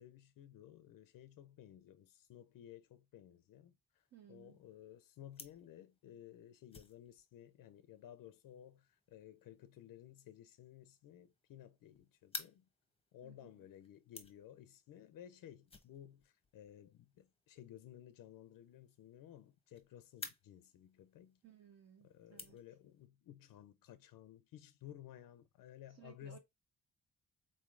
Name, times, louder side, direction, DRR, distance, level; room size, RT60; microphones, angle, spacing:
voice 1, 0.0-3.7 4.3-12.7 13.1-21.4 22.0-26.4, left 11 dB, 85° left, 0.5 m, -56 dB
sound 1, 4.0-23.1, left 4 dB, 15° left, 0.7 m, -57 dB
voice 2, 4.1-4.6 13.2-13.7 21.4-22.6 25.9-26.4, right 8 dB, 50° right, 0.6 m, -60 dB
3.9 x 3.1 x 2.4 m
cardioid pair, 125°, 33 cm